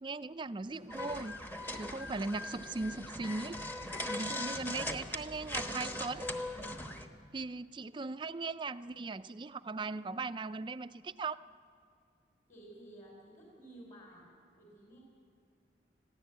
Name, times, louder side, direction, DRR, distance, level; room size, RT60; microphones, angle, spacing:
voice 1, 0.0-1.4 1.7-3.6 4.1-6.3 7.3-11.4, right 3 dB, 25° right, 14 dB, 0.4 m, -39 dB
sound 1, 0.6-7.0, equal, 65° left, 4.3 m, -56 dB
sound 2, 0.9-7.1, left 1 dB, 10° left, 1.0 m, -40 dB
voice 2, 12.5-14.2 14.6-15.0, right 1 dB, 40° left, -2 dB, 4.0 m, -53 dB
22.0 x 15.0 x 8.1 m, 2.3 s
head